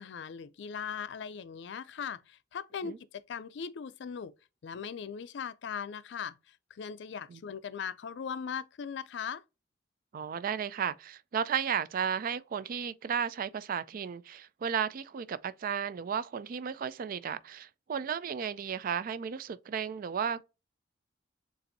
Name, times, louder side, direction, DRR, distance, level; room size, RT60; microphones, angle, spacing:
voice 1, 0.0-4.3 4.6-9.4, left 7 dB, 65° left, 0.4 m, -39 dB
voice 2, 10.1-20.4, right 7 dB, 50° right, 0.3 m, -34 dB
6.8 x 2.6 x 2.6 m
head